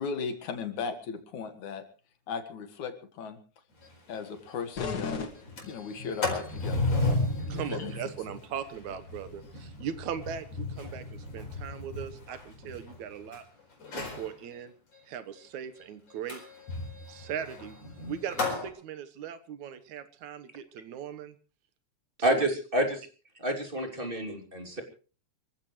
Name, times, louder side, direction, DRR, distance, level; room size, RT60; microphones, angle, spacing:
voice 1, 0.0-1.8 2.3-3.4 4.1-6.9 7.5-7.9, left 5 dB, 80° left, 8 dB, 3.2 m, -37 dB
Sliding door, 3.8-3.9 4.3-4.4 4.7-5.0 5.4-13.4 13.8-14.3 16.3-18.7, left 2 dB, 60° left, 5.7 m, -34 dB
sound 1, 4.8-6.2, left 5 dB, 40° left, 1.7 m, -36 dB
voice 2, 7.5-13.4 13.9-14.7 15.1-16.4 17.1-17.8 18.1-21.4 22.3-22.5, right 8 dB, 80° right, 12 dB, 2.6 m, -39 dB
voice 3, 22.2-23.1 23.4-24.8, right 1 dB, 20° right, 3 dB, 2.9 m, -28 dB
26.0 x 15.0 x 3.2 m, 0.36 s
omnidirectional pair, 3.3 m